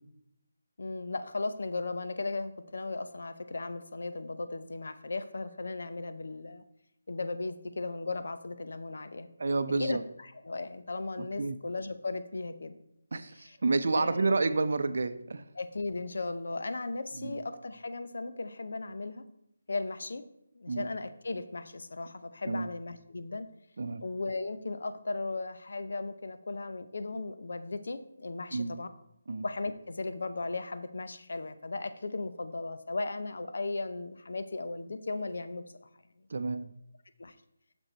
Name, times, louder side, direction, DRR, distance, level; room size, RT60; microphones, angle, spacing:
voice 1, 0.8-6.6 7.1-9.3 9.8-12.7 13.4-13.6 13.9-14.3 15.5-19.2 19.7-20.2 20.5-23.5 24.0-28.9 29.4-35.9 37.2-37.3, left 3 dB, 65° left, 10 dB, 0.7 m, -36 dB
voice 2, 9.4-10.0 11.2-11.6 13.1-15.4 17.2-17.3 20.7-20.9 22.5-22.7 23.8-24.0 28.5-28.7 29.3-29.4 36.3-36.7, right 3 dB, 60° right, 11 dB, 0.6 m, -30 dB
6.6 x 6.3 x 4.3 m, 0.78 s
figure-of-eight pair, 160°, 0 cm